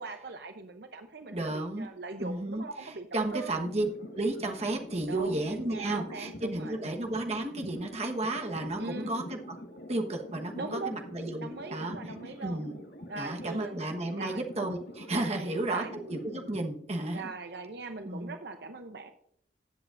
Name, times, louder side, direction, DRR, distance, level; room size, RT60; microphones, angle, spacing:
voice 1, 0.0-3.6 5.1-6.8 8.8-9.2 10.6-11.0 11.4-12.6 13.1-13.8 14.1-14.4 15.3-15.9 17.1-19.1, right 3 dB, 60° right, 6 dB, 0.7 m, -41 dB
voice 2, 1.3-1.9 2.2-3.9 4.1-9.6 9.9-11.9 12.4-12.8 13.2-17.2 18.0-18.3, right 2 dB, 35° right, 3 dB, 1.2 m, -33 dB
sound 1, 3.6-16.7, left 1 dB, 60° left, 1.3 m, -45 dB
15.0 x 7.9 x 2.5 m, 0.67 s
head